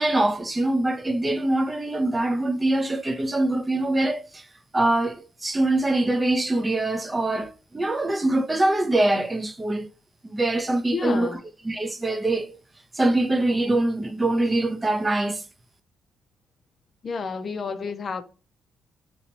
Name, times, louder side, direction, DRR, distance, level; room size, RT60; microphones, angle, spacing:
voice 1, 0.0-4.4 4.7-9.9 10.2-11.3 11.6-12.5 13.0-15.4, right 2 dB, 20° right, 0.6 m, -23 dB
voice 2, 10.9-11.4 17.0-18.2, left 5 dB, 45° left, 0.5 m, -30 dB
3.0 x 2.8 x 4.4 m
cardioid pair, 90°, 0 cm